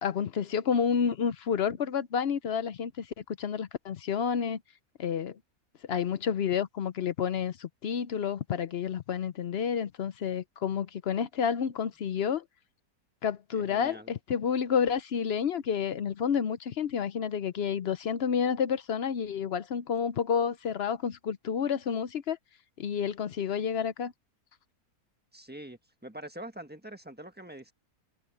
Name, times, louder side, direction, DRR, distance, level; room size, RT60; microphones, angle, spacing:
voice 1, 0.0-4.6 5.0-5.4 5.9-12.4 13.2-22.4 22.8-24.1, left 7 dB, 60° left, 0.7 m, -30 dB
voice 2, 13.5-14.1 25.3-27.7, right 1 dB, 5° right, 1.3 m, -44 dB
omnidirectional pair, 1.6 m